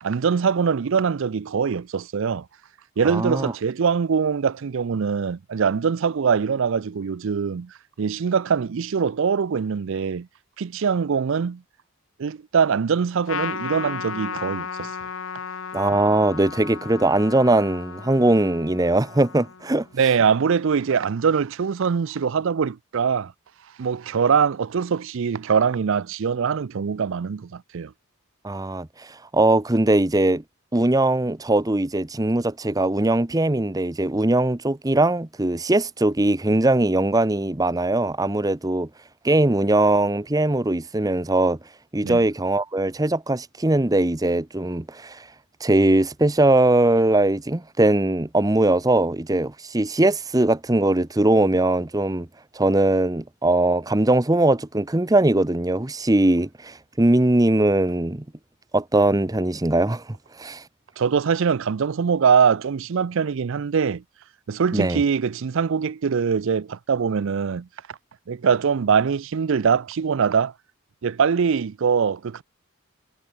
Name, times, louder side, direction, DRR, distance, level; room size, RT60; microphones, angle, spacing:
voice 1, 0.0-2.5 3.0-10.3 10.6-11.6 12.2-14.9 19.9-23.3 23.8-27.9 42.0-42.2 61.0-64.0 64.5-67.7 68.3-70.5 71.0-72.4, right 6 dB, 60° right, 0.4 m, -23 dB
voice 2, 3.0-3.5 15.7-19.9 28.4-30.4 30.7-38.9 39.2-41.6 41.9-45.3 45.6-52.3 52.5-58.2 58.7-60.6 64.7-65.0, right 2 dB, 15° right, 0.7 m, -20 dB
Trumpet, 13.3-20.0, left 6 dB, 60° left, 0.9 m, -34 dB
head